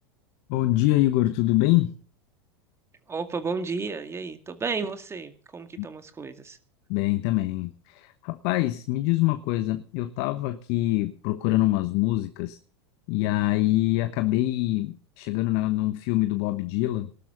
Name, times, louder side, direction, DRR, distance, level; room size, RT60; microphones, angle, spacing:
voice 1, 0.5-1.9 5.8-5.9 6.9-12.6 13.1-17.1, left 17 dB, 55° left, 10 dB, 1.1 m, -25 dB
voice 2, 3.1-6.6, right 4 dB, 20° right, 8 dB, 2.2 m, -32 dB
19.0 x 12.0 x 3.9 m, 0.43 s
hypercardioid pair, 90°, 14 cm